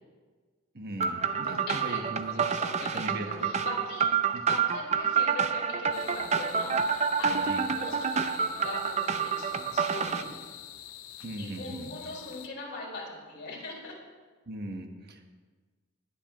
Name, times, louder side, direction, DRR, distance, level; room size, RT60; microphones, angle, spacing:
voice 1, 0.7-2.4 2.9-3.5 4.3-4.4 7.3-7.6 11.2-11.9 14.5-15.2, right 1 dB, 50° right, 4 dB, 1.3 m, -39 dB
sound 1, 1.0-10.2, right 6 dB, 35° right, 0.5 m, -28 dB
voice 2, 1.4-4.1 4.5-10.5 11.4-14.0, left 2 dB, 55° left, -5 dB, 4.7 m, -41 dB
sound 2, 5.9-12.5, left 11 dB, 85° left, 0.7 m, -46 dB
20.5 x 10.0 x 3.1 m, 1.4 s
head